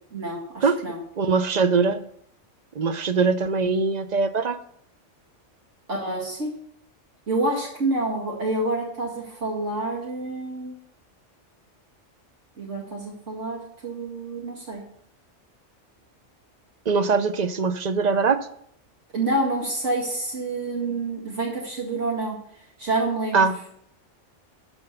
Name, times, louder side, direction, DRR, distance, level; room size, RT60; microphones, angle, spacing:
voice 1, 0.1-1.0 5.9-6.5 7.3-10.7 12.6-14.8 19.1-22.4 22.8-23.4, right 2 dB, 75° right, -3 dB, 2.5 m, -28 dB
voice 2, 1.2-2.0 2.7-4.6 16.9-18.5 23.3-23.6, right 4 dB, 45° right, 11 dB, 0.6 m, -22 dB
12.5 x 4.4 x 6.7 m, 0.68 s
omnidirectional pair, 1.2 m